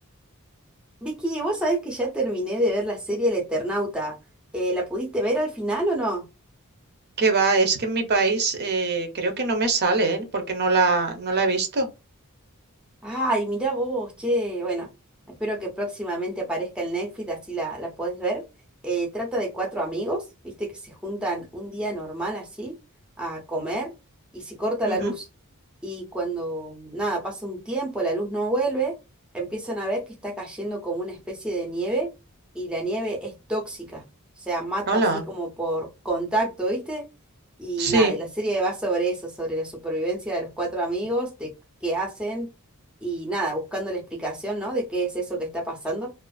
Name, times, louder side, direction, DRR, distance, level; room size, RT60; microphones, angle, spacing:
voice 1, 1.0-4.1 4.5-6.2 13.0-14.9 15.4-18.4 18.8-22.7 23.2-23.9 24.3-25.2 25.8-28.9 29.3-32.1 32.5-34.0 34.5-37.1 37.6-41.5 41.8-42.5 43.0-46.1, right 1 dB, 5° right, 0.6 m, -28 dB
voice 2, 7.2-11.9 24.9-25.1 34.9-35.2 37.8-38.1, right 3 dB, 50° right, 0.6 m, -22 dB
2.5 x 2.4 x 2.3 m
head